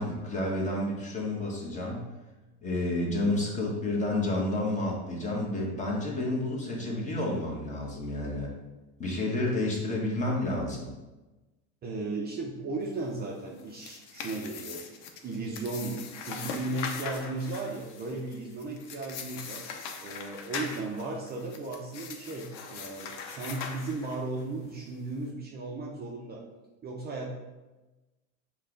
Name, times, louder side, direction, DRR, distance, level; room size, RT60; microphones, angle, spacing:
voice 1, 0.0-2.1 2.6-8.5 9.0-10.9, left 1 dB, 20° left, -2 dB, 1.1 m, -30 dB
voice 2, 11.8-14.8 15.2-19.7 20.0-26.4 26.8-27.3, right 2 dB, 30° right, -1 dB, 0.6 m, -36 dB
sound 1, 13.5-24.4, left 6 dB, 85° left, 0.7 m, -41 dB
5.4 x 2.3 x 3.8 m, 1.1 s
supercardioid pair, 120°, 35 cm